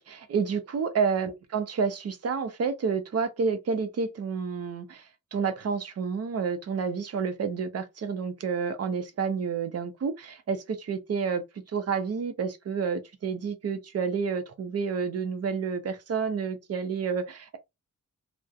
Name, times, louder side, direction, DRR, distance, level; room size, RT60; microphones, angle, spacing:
voice 1, 0.0-5.0 5.3-11.4 11.7-17.6, right 5 dB, 50° right, 0.5 m, -29 dB
2.3 x 2.1 x 2.6 m
wide cardioid pair, 140°, 32 cm